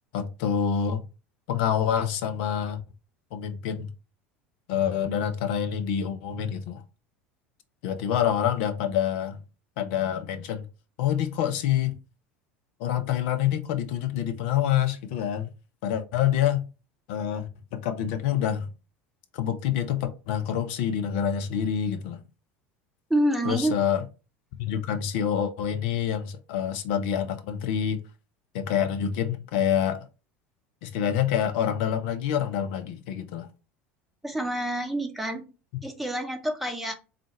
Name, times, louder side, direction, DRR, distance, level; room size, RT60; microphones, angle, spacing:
voice 1, 0.1-1.0 1.5-2.8 3.3-3.9 4.7-6.8 7.8-9.4 9.8-10.7 11.0-11.9 12.8-15.5 15.8-16.6 17.1-18.7 19.3-22.2 23.5-24.0 24.6-28.0 28.5-30.1 30.8-33.5, left 9 dB, 60° left, 0.7 m, -27 dB
voice 2, 23.1-23.7 34.2-35.5 35.8-36.9, right 1 dB, ahead, 0.9 m, -27 dB
3.7 x 2.5 x 4.4 m
figure-of-eight pair, 75°, 7 cm